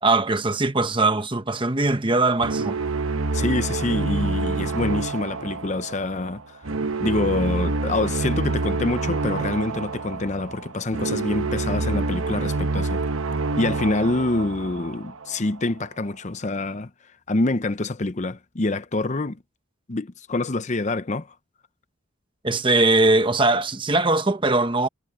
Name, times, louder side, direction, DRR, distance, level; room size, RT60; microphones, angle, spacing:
voice 1, 0.0-2.8 22.4-24.9, right 2 dB, 25° right, 1.0 m, -21 dB
sound 1, 2.4-15.5, right 3 dB, 75° right, 1.0 m, -27 dB
voice 2, 3.3-6.6 7.0-13.0 13.6-16.9 17.3-19.4 19.9-21.3, left 2 dB, 35° left, 0.7 m, -26 dB
head